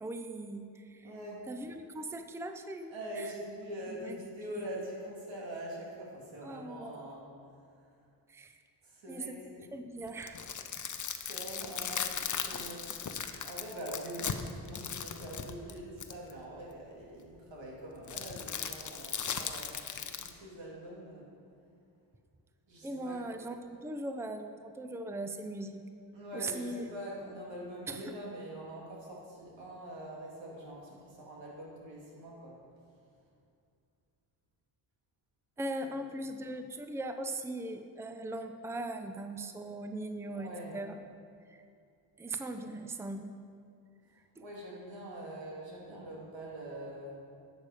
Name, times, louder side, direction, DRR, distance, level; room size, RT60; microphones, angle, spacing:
voice 1, 0.0-1.1 1.5-3.3 4.0-4.2 4.6-4.7 6.4-7.0 8.3-8.6 9.1-10.4 22.8-25.9 26.3-26.9 27.9-28.1 35.6-40.9 41.5-41.6 42.2-43.3 44.4-44.5, right 2 dB, 5° right, 7 dB, 0.5 m, -40 dB
voice 2, 1.0-1.4 2.9-7.3 8.8-9.8 11.1-21.3 22.7-23.2 26.1-32.6 35.8-36.0 40.3-40.8 42.5-42.7 44.4-47.2, right 1 dB, 85° right, -3 dB, 2.5 m, -44 dB
sound 1, 10.1-16.3 18.1-20.3, left 7 dB, 45° left, 0.7 m, -38 dB
11.0 x 7.1 x 4.9 m, 2.4 s
cardioid pair, 70°, 44 cm